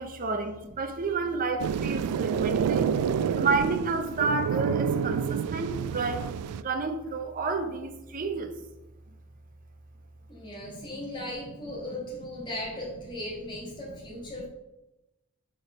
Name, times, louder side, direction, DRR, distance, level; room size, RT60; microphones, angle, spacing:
voice 1, 0.0-3.0 3.3-6.3 6.6-8.6 10.6-11.1, right 4 dB, 40° right, 6 dB, 0.6 m, -30 dB
sound 1, 1.6-6.6, right 7 dB, 80° right, 0.3 m, -28 dB
voice 2, 10.3-14.5, left 1 dB, 20° left, -5 dB, 2.0 m, -37 dB
4.7 x 4.6 x 5.1 m, 0.96 s
head